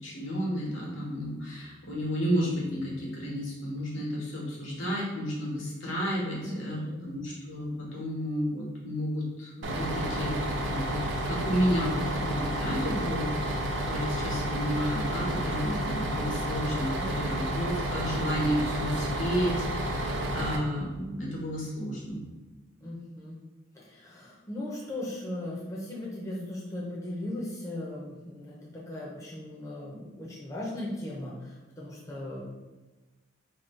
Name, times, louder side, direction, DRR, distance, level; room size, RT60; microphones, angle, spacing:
voice 1, 0.0-16.9 17.2-22.2, equal, 85° left, -4 dB, 1.3 m, -32 dB
voice 2, 6.4-7.1 16.9-17.1 17.4-18.3 22.8-23.4 23.7-32.4, left 1 dB, 15° left, -5 dB, 0.5 m, -38 dB
Bus, 9.6-20.6, right 1 dB, 75° right, 0.5 m, -31 dB
2.9 x 2.7 x 4.4 m, 1.2 s
head